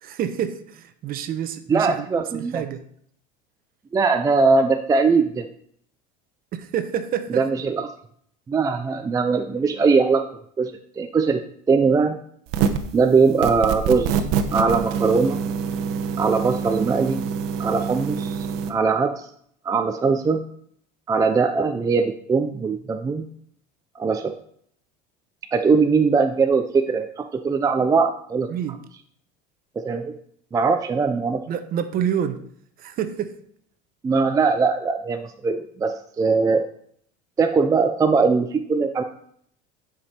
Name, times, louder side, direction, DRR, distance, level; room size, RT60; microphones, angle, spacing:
voice 1, 0.0-2.1 2.3-2.8 6.5-7.4 28.5-28.8 31.5-32.4 32.8-33.4, right 9 dB, 45° right, 0.9 m, -27 dB
voice 2, 1.7-2.6 3.9-5.5 7.4-7.9 8.5-10.2 10.6-11.4 11.7-12.2 12.9-14.2 14.5-15.4 16.2-17.2 17.6-19.3 19.6-20.4 21.1-23.3 24.0-24.3 25.5-28.5 29.8-30.1 30.5-31.4 34.0-36.6 37.4-39.0, right 4 dB, 15° right, 0.4 m, -21 dB
sound 1, 12.5-12.9 13.4-18.7, right 7 dB, 75° right, 1.0 m, -25 dB
10.0 x 5.2 x 4.3 m
supercardioid pair, 120°, 21 cm